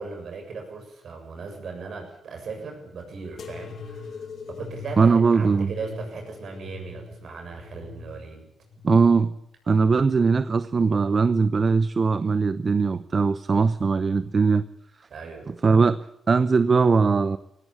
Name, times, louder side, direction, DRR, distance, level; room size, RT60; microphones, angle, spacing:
voice 1, 0.0-8.5 15.1-15.5, right 4 dB, 65° right, 4 dB, 7.4 m, -38 dB
sound 1, 3.4-10.6 11.1-11.9 12.7-13.2 14.2-14.3, left 4 dB, 65° left, 2.2 m, -42 dB
voice 2, 5.0-5.7 8.8-9.3 9.7-14.6 15.6-17.4, right 4 dB, 45° right, 14 dB, 0.8 m, -20 dB
18.5 x 17.0 x 8.7 m, 0.83 s
supercardioid pair, 60°, 0 cm